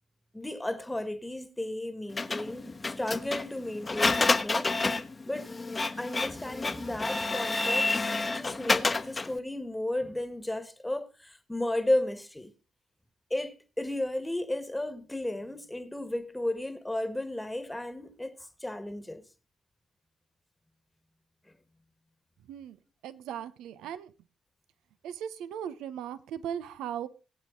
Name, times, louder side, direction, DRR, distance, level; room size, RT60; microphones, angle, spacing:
voice 1, 0.3-4.7 5.3-5.5 6.0-12.5 13.3-19.2, left 1 dB, 10° left, 1.5 m, -34 dB
Printer, 2.2-9.4, left 3 dB, 35° left, 1.1 m, -29 dB
voice 2, 23.0-24.1 25.0-27.1, right 9 dB, 80° right, 0.8 m, -38 dB
19.5 x 8.6 x 3.8 m
hypercardioid pair, 45°, 0 cm